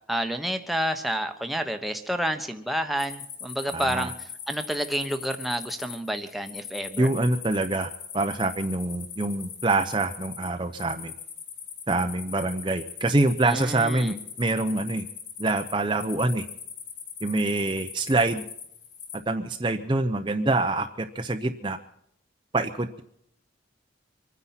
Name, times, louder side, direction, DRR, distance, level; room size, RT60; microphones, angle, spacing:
voice 1, 0.0-4.1 4.5-7.1 13.4-14.2, equal, ahead, 5 dB, 1.1 m, -29 dB
sound 1, 3.0-19.2, left 7 dB, 55° left, 2.4 m, -41 dB
voice 2, 3.7-4.1 7.0-11.1 11.9-15.0 15.4-16.5 17.2-18.4 19.3-21.8 22.5-23.0, right 2 dB, 25° right, 6 dB, 0.7 m, -25 dB
25.0 x 9.8 x 5.9 m, 0.70 s
head